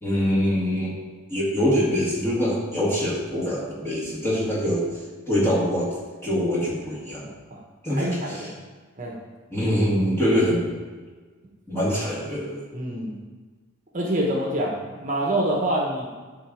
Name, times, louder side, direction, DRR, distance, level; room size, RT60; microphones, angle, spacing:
voice 1, 0.0-1.0 1.3-6.0 6.2-7.3 7.8-8.5 9.5-10.7 11.7-12.6, equal, 10° left, -6 dB, 1.9 m, -24 dB
voice 2, 7.9-8.5 9.0-9.2 12.7-13.1 13.9-16.1, right 1 dB, 35° right, -1 dB, 1.1 m, -26 dB
9.9 x 4.0 x 6.2 m, 1.4 s
head